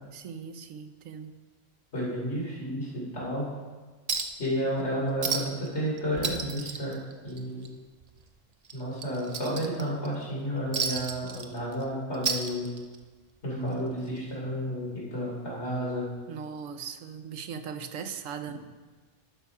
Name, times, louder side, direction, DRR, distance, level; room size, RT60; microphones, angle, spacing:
voice 1, 0.1-1.3 16.3-18.6, right 6 dB, 85° right, 9 dB, 1.0 m, -39 dB
voice 2, 1.9-3.5 4.4-6.9 7.2-7.7 8.7-12.7 13.4-16.1, equal, 60° left, -6 dB, 3.2 m, -31 dB
Chink clink, 4.1-4.5 4.8-4.9 5.2-5.7 6.0-7.7 8.0-8.2 8.6-10.1 10.7-11.8 12.1-13.1 14.2-14.3, right 5 dB, 45° right, 0.5 m, -32 dB
11.5 x 5.4 x 4.7 m, 1.4 s
omnidirectional pair, 1.3 m